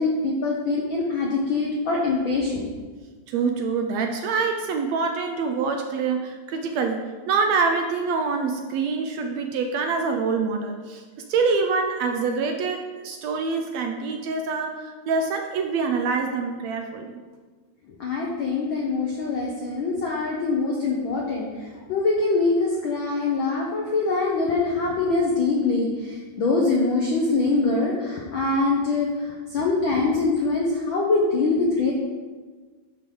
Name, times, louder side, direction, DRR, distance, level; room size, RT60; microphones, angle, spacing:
voice 1, 0.0-2.6 17.9-31.9, left 3 dB, 80° left, -2 dB, 1.1 m, -24 dB
voice 2, 3.3-11.0 11.3-17.2, right 4 dB, 75° right, 4 dB, 1.7 m, -25 dB
11.0 x 3.7 x 5.2 m, 1.4 s
omnidirectional pair, 3.4 m